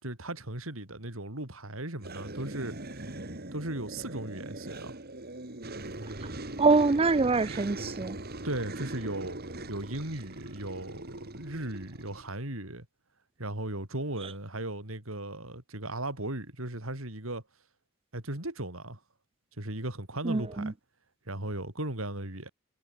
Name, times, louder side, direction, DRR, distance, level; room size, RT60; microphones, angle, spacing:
voice 1, 0.0-2.8 3.5-4.9 8.4-9.4 9.7-12.9 13.4-17.4 18.1-19.0 19.6-20.7 21.3-22.5, right 1 dB, 80° right, 5.1 m, -36 dB
sound 1, 2.0-12.3, right 2 dB, 50° right, 3.2 m, -41 dB
voice 2, 6.6-8.2 20.2-20.7, right 3 dB, 25° right, 0.5 m, -24 dB
head